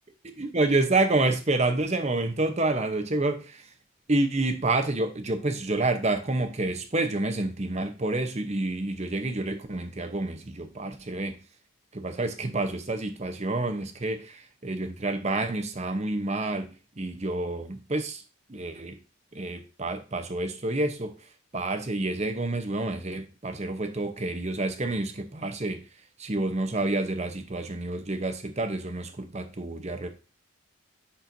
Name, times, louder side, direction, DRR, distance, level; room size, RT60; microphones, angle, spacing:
voice 1, 0.4-3.6 4.1-11.4 11.9-18.2 18.5-19.0 19.3-21.1 21.5-25.8 26.2-30.1, right 2 dB, 30° right, 0.8 m, -28 dB
10.0 x 4.4 x 2.6 m
head